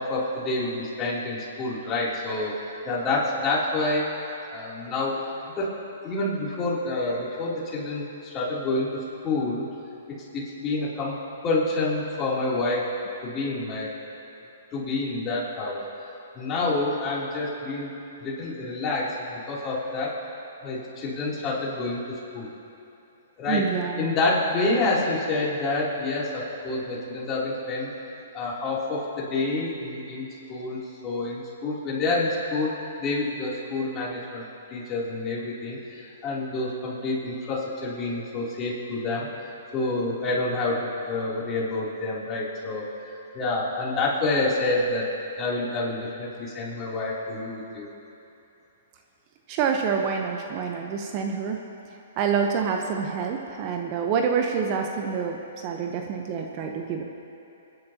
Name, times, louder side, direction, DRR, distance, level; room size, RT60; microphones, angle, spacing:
voice 1, 0.0-2.5 2.8-4.1 4.5-5.1 5.6-5.7 6.0-8.9 9.2-9.6 10.3-11.1 11.4-12.9 13.2-13.9 14.7-15.8 16.3-17.9 18.2-20.2 20.6-22.5 23.4-23.7 24.0-27.9 28.3-32.7 33.0-34.4 34.7-39.3 39.7-42.8 43.3-45.1 45.4-47.9, left 2 dB, 25° left, -6 dB, 3.1 m, -28 dB
voice 2, 23.5-24.0 49.5-51.6 52.2-57.0, right 6 dB, 40° right, 3 dB, 0.9 m, -27 dB
25.5 x 10.5 x 2.9 m, 2.9 s
hypercardioid pair, 140°, 0 cm